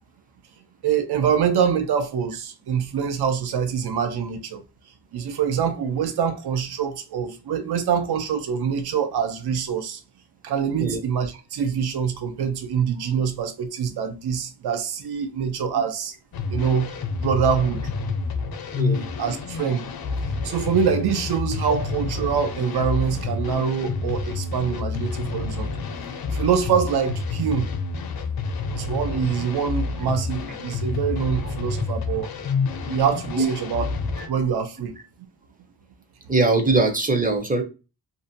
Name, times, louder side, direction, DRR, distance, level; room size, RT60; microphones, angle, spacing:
voice 1, 0.8-4.6 5.1-10.0 10.4-16.1 16.5-16.9 17.2-17.8 19.2-19.9 20.4-25.7 26.3-27.7 28.7-32.3 32.7-33.9 34.3-35.0, right 7 dB, 65° right, 0.5 m, -25 dB
sound 1, 16.3-34.3, left 4 dB, 60° left, 0.5 m, -29 dB
voice 2, 18.7-19.1 33.4-33.5 34.2-34.3 36.3-37.6, right 3 dB, 20° right, 0.5 m, -21 dB
2.6 x 2.1 x 2.6 m
wide cardioid pair, 120°, 42 cm